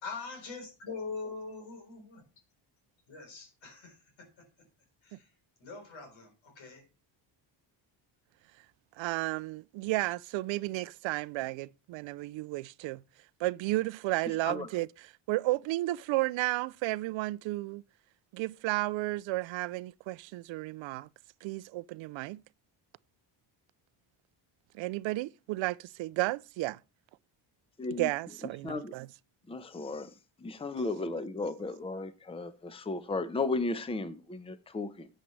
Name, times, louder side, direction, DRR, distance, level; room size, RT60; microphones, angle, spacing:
voice 1, 0.0-2.2 3.1-4.5 5.0-5.3 5.6-6.9, left 4 dB, 75° left, 3.7 m, -43 dB
voice 2, 9.0-13.0 13.4-14.9 15.3-17.8 18.3-21.1 21.4-22.4 24.7-26.8 28.0-29.1, right 19 dB, 75° right, 0.5 m, -33 dB
voice 3, 27.8-28.1 28.6-28.9 29.5-30.1 30.4-35.1, left 3 dB, 10° left, 0.8 m, -35 dB
11.0 x 7.6 x 3.2 m
cardioid pair, 105°, 46 cm